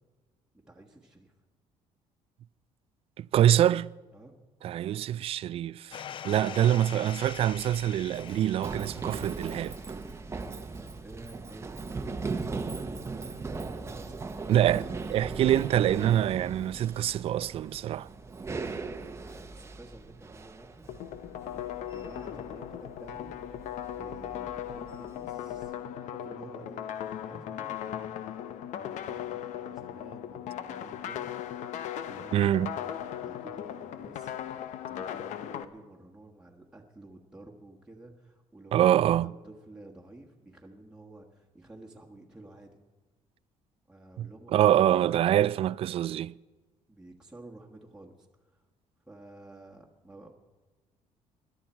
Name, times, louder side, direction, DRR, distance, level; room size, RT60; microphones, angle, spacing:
voice 1, 0.7-1.3 4.1-4.4 10.8-13.5 13.9-14.2 18.4-20.9 21.4-23.6 23.9-26.9 27.3-28.1 28.8-31.3 32.0-34.4 34.9-42.8 43.9-44.9 46.9-48.6 49.0-50.3, right 2 dB, 5° right, 1.4 m, -51 dB
voice 2, 3.2-3.9 4.6-9.8 14.5-18.1 32.3-32.7 38.7-39.3 44.2-46.3, right 11 dB, 50° right, 0.3 m, -25 dB
sound 1, 5.9-9.9, left 9 dB, 40° left, 0.4 m, -44 dB
Run, 7.2-25.7, right 4 dB, 20° right, 0.9 m, -39 dB
sound 2, 20.9-35.6, left 10 dB, 70° left, 0.8 m, -38 dB
21.0 x 12.0 x 4.4 m
cardioid pair, 115°, 13 cm